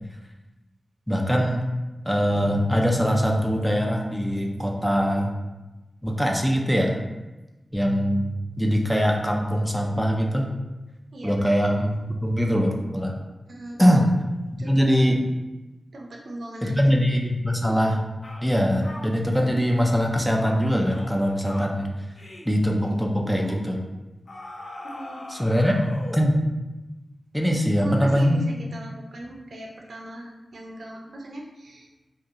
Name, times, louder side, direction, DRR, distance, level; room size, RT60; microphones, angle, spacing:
voice 1, 1.1-1.7 2.1-5.3 6.0-7.0 7.7-8.3 8.6-10.5 11.2-13.1 13.8-14.1 14.6-15.2 16.6-18.0 18.4-21.9 22.5-23.8 25.3-26.4 27.3-28.4, equal, ahead, 0 dB, 0.4 m, -22 dB
voice 2, 11.1-11.5 13.5-14.0 14.6-14.9 15.9-16.9 24.8-25.3 27.5-31.9, right 1 dB, 80° right, 0 dB, 0.4 m, -38 dB
sound 1, 17.6-17.8 18.2-18.5 18.8-19.5 19.9-20.1 20.4-20.6 20.9-21.2 21.4-21.7 22.2-22.5 22.8-23.0 23.4-23.7 24.3-26.3, left 1 dB, 60° left, 0.4 m, -40 dB
2.7 x 2.3 x 2.4 m, 1.1 s
wide cardioid pair, 75°, 0 cm